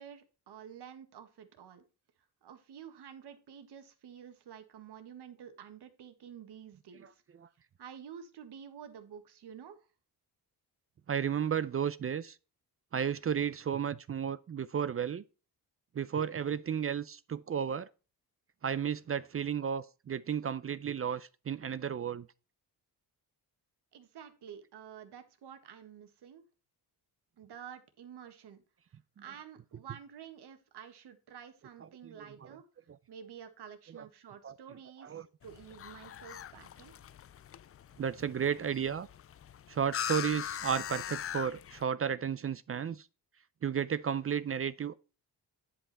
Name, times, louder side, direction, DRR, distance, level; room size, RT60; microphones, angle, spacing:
voice 1, 0.0-1.8 2.4-7.2 7.8-9.8 23.9-26.4 27.4-28.6 29.2-32.6 33.1-36.9, right 8 dB, 80° right, 1.7 m, -50 dB
voice 2, 11.1-12.4 12.9-15.2 15.9-17.9 18.6-22.3 31.8-32.6 33.9-34.0 34.4-34.6 35.0-35.2 38.0-39.1 39.7-43.1 43.6-44.9, right 8 dB, 35° right, 0.5 m, -33 dB
sound 1, 35.4-41.8, left 10 dB, 35° left, 0.4 m, -41 dB
10.0 x 5.6 x 4.2 m
wide cardioid pair, 130°, 40 cm